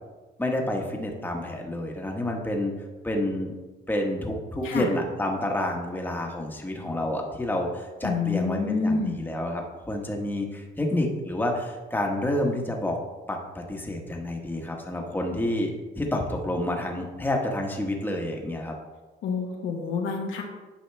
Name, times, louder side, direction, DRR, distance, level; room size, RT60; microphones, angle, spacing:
voice 1, 0.4-2.7 3.0-3.5 3.9-13.0 13.3-18.7, left 1 dB, 10° left, 1 dB, 1.3 m, -29 dB
voice 2, 8.0-9.3 19.2-20.4, left 4 dB, 80° left, 1 dB, 1.4 m, -28 dB
8.9 x 5.5 x 3.4 m, 1.2 s
cardioid pair, 90°, 20 cm